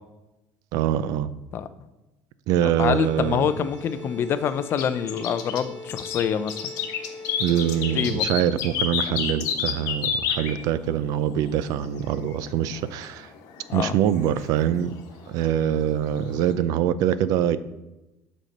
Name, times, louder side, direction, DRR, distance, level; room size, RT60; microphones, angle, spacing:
voice 1, 0.7-1.3 2.5-3.5 7.4-13.3 13.7-14.9 15.3-17.6, right 10 dB, 65° right, 15 dB, 0.5 m, -24 dB
voice 2, 1.5-1.9 2.8-6.6 7.9-8.3 9.1-9.2 13.7-14.0, left 8 dB, 35° left, 12 dB, 0.4 m, -26 dB
sound 1, 2.8-8.7, left 3 dB, 40° right, 3.3 m, -40 dB
sound 2, 3.8-16.5, left 7 dB, 65° left, 1.1 m, -31 dB
7.9 x 4.3 x 6.5 m, 0.99 s
cardioid pair, 170°, 7 cm